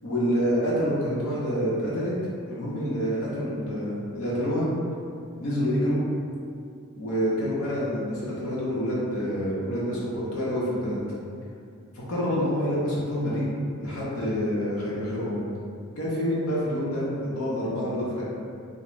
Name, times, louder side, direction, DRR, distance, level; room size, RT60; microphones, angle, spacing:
voice 1, 0.0-2.1 2.5-4.7 5.4-6.0 6.9-11.0 12.1-13.5 13.8-15.4 16.0-18.2, equal, 85° left, -7 dB, 0.7 m, -27 dB
2.4 x 2.0 x 3.1 m, 2.4 s
head